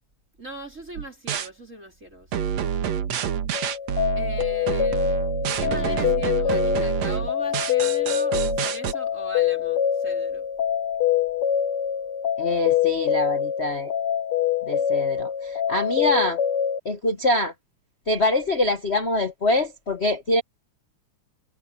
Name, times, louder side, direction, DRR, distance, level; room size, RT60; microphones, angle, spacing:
voice 1, 0.4-2.5 4.2-5.1 5.4-10.5, right 1 dB, 25° right, 4.5 m, -39 dB
sound 1, 1.0-1.5 2.3-8.9, right 8 dB, 70° right, 2.5 m, -27 dB
sound 2, 3.5-16.8, left 9 dB, 60° left, 1.7 m, -25 dB
voice 2, 12.4-13.9 14.7-16.4 16.8-17.5 18.1-20.4, left 2 dB, 85° left, 0.5 m, -24 dB
omnidirectional pair, 3.3 m